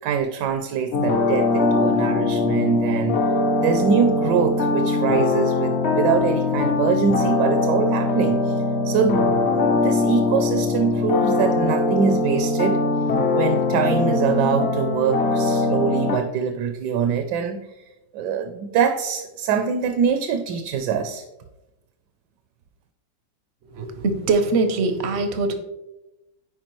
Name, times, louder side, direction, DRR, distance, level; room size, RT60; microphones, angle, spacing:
voice 1, 0.0-3.2 3.6-9.4 9.7-12.8 13.3-17.7 18.1-21.2, right 6 dB, 75° right, 8 dB, 1.1 m, -24 dB
sound 1, 0.9-16.2, left 3 dB, 60° left, 0.7 m, -21 dB
voice 2, 23.7-25.5, right 3 dB, 60° right, 7 dB, 0.7 m, -22 dB
9.4 x 4.7 x 3.0 m, 0.98 s
omnidirectional pair, 1.9 m